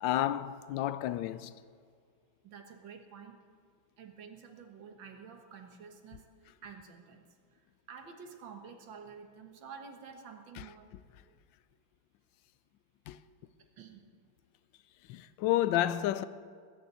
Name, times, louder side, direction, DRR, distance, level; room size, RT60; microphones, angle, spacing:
voice 1, 0.0-1.5 10.6-10.7 13.1-13.2 15.1-16.3, left 13 dB, 85° left, 1.3 m, -30 dB
voice 2, 2.4-3.4 4.0-10.9 13.8-14.1, right 6 dB, 90° right, 2.1 m, -50 dB
19.5 x 6.8 x 9.2 m
omnidirectional pair, 2.0 m